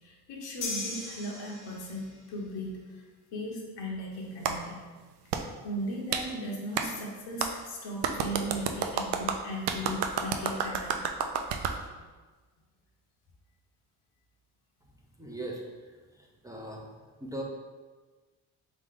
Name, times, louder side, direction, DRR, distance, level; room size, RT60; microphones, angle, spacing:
voice 1, 0.0-3.0 3.3-4.9 5.6-11.0, equal, 90° left, -1 dB, 1.1 m, -37 dB
sound 1, 0.6-2.2, left 3 dB, 50° left, 0.8 m, -37 dB
Clapping, 4.4-4.6 5.3-5.4 6.1-6.2 6.8-6.9 7.4-7.5 8.0-11.8, right 7 dB, 80° right, 0.5 m, -30 dB
voice 2, 15.2-16.9 17.2-17.4, right 1 dB, 10° right, -1 dB, 0.5 m, -40 dB
3.8 x 3.2 x 3.7 m, 1.3 s
cardioid pair, 115°, 41 cm